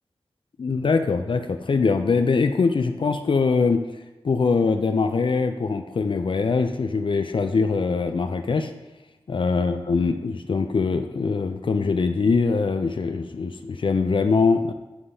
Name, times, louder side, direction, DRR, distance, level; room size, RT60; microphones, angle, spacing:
voice 1, 0.6-3.8 4.2-8.7 9.3-14.7, left 4 dB, 60° left, 8 dB, 0.4 m, -22 dB
9.6 x 3.7 x 2.7 m, 1.1 s
cardioid pair, 45°, 10 cm